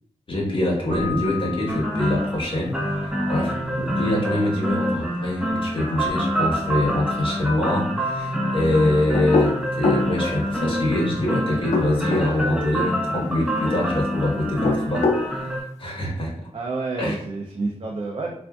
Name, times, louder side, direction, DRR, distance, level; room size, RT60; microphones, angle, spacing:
voice 1, 0.3-2.7 3.0-9.5 9.8-15.1 15.8-16.3 17.0-17.2, left 1 dB, 45° left, -3 dB, 1.1 m, -24 dB
Keyboard (musical), 0.9-2.7, left 6 dB, 25° right, 1.1 m, -35 dB
sound 1, 1.7-15.6, equal, 5° right, 0.6 m, -26 dB
voice 2, 3.1-3.5 16.5-18.3, right 3 dB, 50° right, -1 dB, 0.5 m, -29 dB
sound 2, 9.1-10.1 11.5-12.3 14.4-15.3, left 3 dB, 75° left, 0.5 m, -22 dB
3.4 x 2.5 x 2.3 m, 0.69 s
wide cardioid pair, 90°, 12 cm